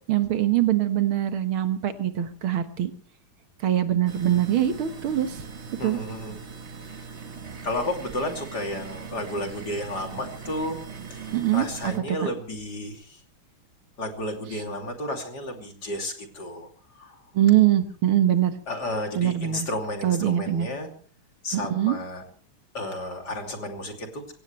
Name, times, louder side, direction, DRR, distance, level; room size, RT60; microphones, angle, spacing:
voice 1, 0.1-2.9 3.6-5.4 5.8-6.0 11.3-11.9 17.3-18.5 19.2-19.7 20.0-20.7 21.5-22.0, right 12 dB, 75° right, 9 dB, 2.2 m, -23 dB
sound 1, 4.1-12.0, right 5 dB, 35° right, 1.6 m, -40 dB
voice 2, 5.8-6.4 6.8-7.2 7.6-10.8 11.1-11.2 11.5-13.2 14.0-16.7 16.9-17.2 18.7-20.9 21.4-22.2 22.7-24.3, left 1 dB, 50° left, 3 dB, 3.4 m, -32 dB
25.0 x 17.0 x 3.2 m, 0.43 s
omnidirectional pair, 2.4 m